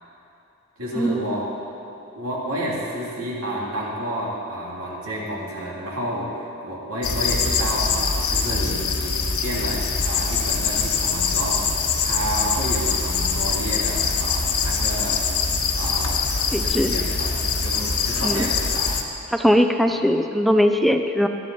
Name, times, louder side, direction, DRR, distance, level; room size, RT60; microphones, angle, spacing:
voice 1, 0.8-1.5 2.1-15.3 15.7-16.2 16.6-18.9 19.9-20.0, right 1 dB, 90° right, -4 dB, 3.2 m, -30 dB
sound 1, 7.0-19.0, left 5 dB, 90° left, 1.3 m, -23 dB
voice 2, 16.5-16.9 18.2-18.5 19.3-21.3, equal, ahead, 6 dB, 0.4 m, -20 dB
20.0 x 11.5 x 4.2 m, 2.9 s
head